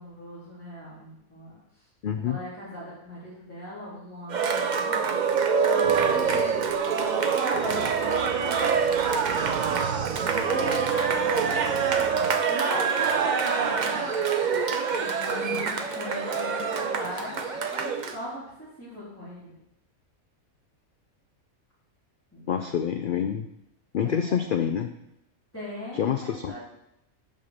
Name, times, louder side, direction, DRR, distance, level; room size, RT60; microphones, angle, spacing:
voice 1, 0.0-1.5 2.2-5.1 5.7-6.6 6.9-8.7 10.2-12.2 12.5-14.1 15.0-19.5 22.3-22.8 24.0-24.6 25.5-26.6, equal, 10° left, -13 dB, 3.1 m, -38 dB
voice 2, 2.0-2.4 22.5-23.5 23.9-24.9 25.9-26.6, left 8 dB, 85° left, 7 dB, 0.4 m, -27 dB
Cheering, 4.3-18.2, right 6 dB, 60° right, 0.5 m, -25 dB
sound 1, 5.8-12.3, right 8 dB, 85° right, 1.2 m, -37 dB
sound 2, 11.1-17.9, right 1 dB, 25° right, 1.0 m, -40 dB
5.6 x 5.3 x 6.6 m, 0.81 s
omnidirectional pair, 1.5 m